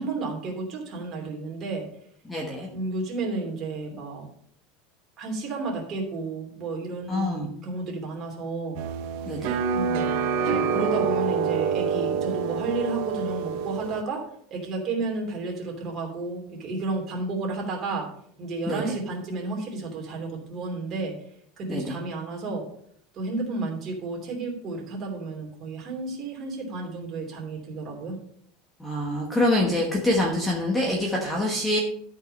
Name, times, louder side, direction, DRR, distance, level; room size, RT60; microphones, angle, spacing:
voice 1, 0.0-1.8 2.7-4.3 5.2-8.8 9.7-10.1 10.4-18.1 18.4-21.1 21.6-22.6 23.1-28.1, right 3 dB, 25° right, -1 dB, 2.9 m, -32 dB
voice 2, 2.2-2.7 7.1-7.5 9.2-9.6 18.7-18.9 21.7-22.0 28.8-31.8, left 1 dB, 5° left, -1 dB, 1.3 m, -25 dB
sound 1, 8.7-14.0, right 6 dB, 50° right, 0.8 m, -26 dB
12.5 x 5.6 x 5.3 m, 0.66 s
supercardioid pair, 175°, 0 cm